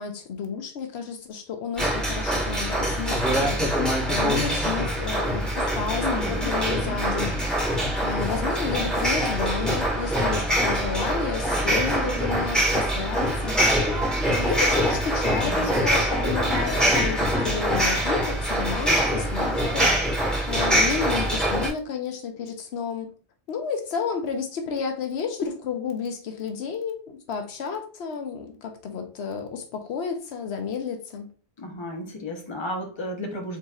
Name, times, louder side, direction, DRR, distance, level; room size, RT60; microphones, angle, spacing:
voice 1, 0.0-7.4 8.0-13.8 14.2-20.1 20.5-23.1 23.5-31.3, left 6 dB, 80° left, 5 dB, 1.0 m, -31 dB
sound 1, 1.8-21.7, equal, ahead, 1.9 m, -24 dB
voice 2, 6.0-6.5 11.6-12.0 15.4-15.9 31.6-33.6, left 2 dB, 30° left, 1 dB, 0.9 m, -33 dB
4.1 x 4.0 x 2.3 m, 0.39 s
omnidirectional pair, 1.1 m